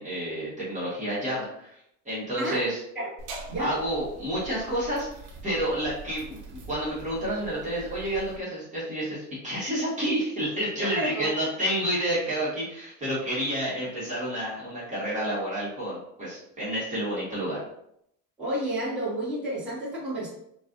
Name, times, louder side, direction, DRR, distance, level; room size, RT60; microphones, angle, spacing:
voice 1, 0.0-1.7 2.0-2.8 3.6-5.1 5.4-17.6, equal, 20° right, -9 dB, 1.4 m, -29 dB
sound 1, 3.2-8.4, right 3 dB, 55° right, 0.8 m, -43 dB
voice 2, 10.8-11.3 18.4-20.3, right 1 dB, 5° right, -11 dB, 1.3 m, -30 dB
4.5 x 2.3 x 2.5 m, 0.74 s
cardioid pair, 150°, 37 cm